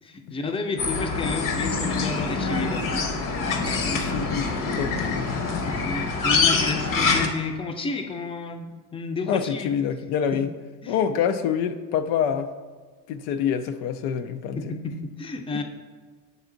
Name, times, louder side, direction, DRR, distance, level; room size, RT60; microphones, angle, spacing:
voice 1, 0.0-4.0 5.6-9.7 10.3-10.4 10.8-11.1 14.6-15.6, left 4 dB, 15° left, 6 dB, 0.5 m, -31 dB
sound 1, 0.8-7.3, left 4 dB, 55° left, 0.9 m, -25 dB
voice 2, 4.0-5.4 9.3-10.5 10.9-12.5 13.1-14.6 15.5-15.6, left 8 dB, 90° left, 9 dB, 0.5 m, -26 dB
7.0 x 3.5 x 3.8 m, 1.4 s
supercardioid pair, 95°, 40 cm